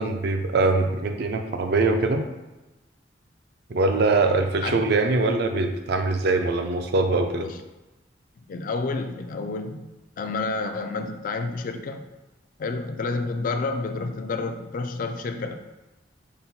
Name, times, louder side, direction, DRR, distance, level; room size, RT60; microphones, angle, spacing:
voice 1, 0.0-2.2 3.7-7.5, right 3 dB, 60° right, 6 dB, 0.5 m, -22 dB
voice 2, 8.5-9.9 10.2-12.0 12.6-15.5, left 3 dB, 50° left, 6 dB, 0.3 m, -29 dB
5.3 x 2.1 x 4.3 m, 1.0 s
head